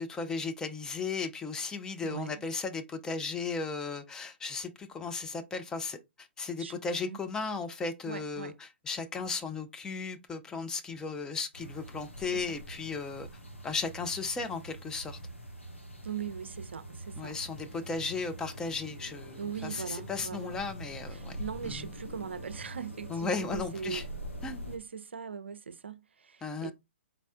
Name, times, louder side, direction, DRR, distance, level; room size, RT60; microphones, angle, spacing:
voice 1, 0.0-13.3 13.6-15.2 17.2-21.9 23.1-24.0 24.4-24.7 26.4-26.7, left 4 dB, 10° left, 0.4 m, -36 dB
voice 2, 2.0-2.4 6.6-7.2 8.1-8.6 12.3-12.5 16.0-17.4 19.4-20.5 21.1-24.1 24.7-26.7, right 7 dB, 65° right, 0.5 m, -40 dB
sound 1, 11.5-24.8, equal, 85° left, 1.3 m, -44 dB
4.1 x 4.1 x 2.3 m
figure-of-eight pair, 125°, 7 cm